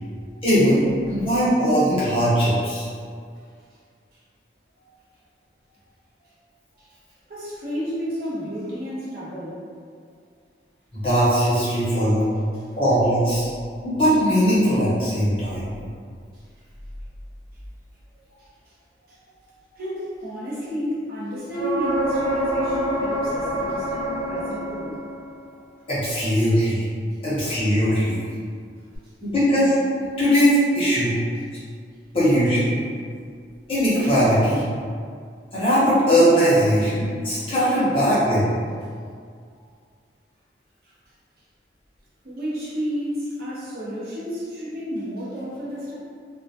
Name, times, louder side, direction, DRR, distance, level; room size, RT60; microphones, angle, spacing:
voice 1, 0.4-0.8 1.1-2.9 10.9-12.4 12.8-13.5 13.8-15.7 25.9-26.8 27.2-28.2 29.2-29.7 30.2-31.2 32.1-32.7 33.7-34.6 35.5-38.5, equal, 30° left, -10 dB, 0.8 m, -19 dB
voice 2, 7.3-9.6 12.5-12.6 16.3-16.4 18.4-18.7 19.1-19.2 19.8-25.0 40.8-40.9 42.2-45.9, equal, 55° right, -8 dB, 0.7 m, -31 dB
sound 1, 21.5-25.3 29.0-29.1, equal, 5° left, 0.8 m, -26 dB
2.1 x 2.1 x 2.7 m, 2.1 s
head